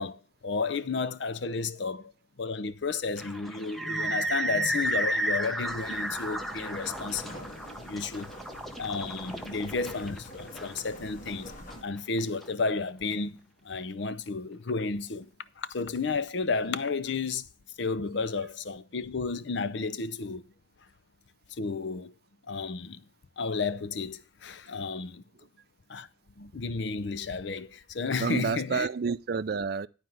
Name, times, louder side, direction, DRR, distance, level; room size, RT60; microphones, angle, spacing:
voice 1, 0.0-2.1 2.4-7.4 7.9-8.3 8.8-11.5 11.8-13.4 13.6-15.3 15.6-17.5 17.8-20.5 21.6-22.1 22.5-23.0 23.4-25.2 25.9-26.1 26.4-28.9, left 4 dB, 60° left, 0.6 m, -32 dB
sound 1, 3.2-12.5, right 1 dB, ahead, 0.8 m, -33 dB
sound 2, 5.6-11.8, left 1 dB, 40° left, 2.2 m, -46 dB
voice 2, 28.2-29.9, right 5 dB, 50° right, 0.4 m, -29 dB
11.5 x 4.5 x 7.7 m
head